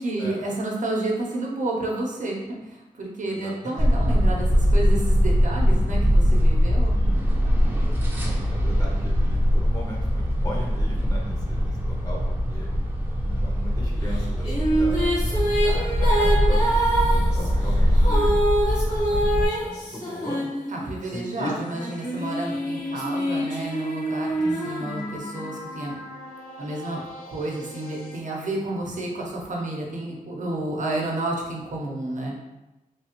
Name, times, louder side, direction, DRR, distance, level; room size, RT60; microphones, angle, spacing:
voice 1, 0.0-6.9 20.7-24.3 24.6-26.0 26.6-32.4, right 2 dB, 60° right, -1 dB, 0.8 m, -30 dB
voice 2, 3.3-3.9 6.9-7.2 8.2-12.2 12.5-12.7 13.4-16.6 17.1-18.4 18.6-20.4 21.1-21.5 24.4-24.7 28.8-28.9, left 1 dB, 25° left, -3 dB, 0.7 m, -38 dB
sound 1, 3.8-19.5, equal, 15° right, 0.6 m, -22 dB
sound 2, 14.1-21.1 21.7-25.5, right 1 dB, 65° left, 1.4 m, -26 dB
sound 3, 21.6-28.2, left 2 dB, 90° left, 0.7 m, -41 dB
3.2 x 2.4 x 2.9 m, 1.0 s
cardioid pair, 75°, 14 cm